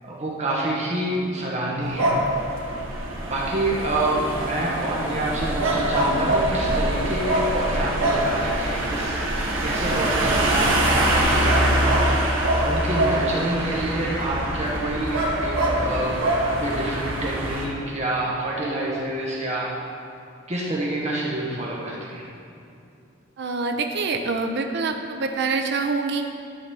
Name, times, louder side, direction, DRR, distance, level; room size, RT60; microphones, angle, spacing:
voice 1, 0.0-2.1 3.2-9.3 9.6-16.1 16.6-19.7 20.5-22.2, right 1 dB, 35° right, -4 dB, 1.2 m, -27 dB
sound 1, 1.8-17.7, right 1 dB, 85° right, 1.5 m, -23 dB
voice 2, 23.4-26.2, right 4 dB, 60° right, 4 dB, 0.6 m, -25 dB
11.5 x 4.1 x 6.8 m, 2.6 s
head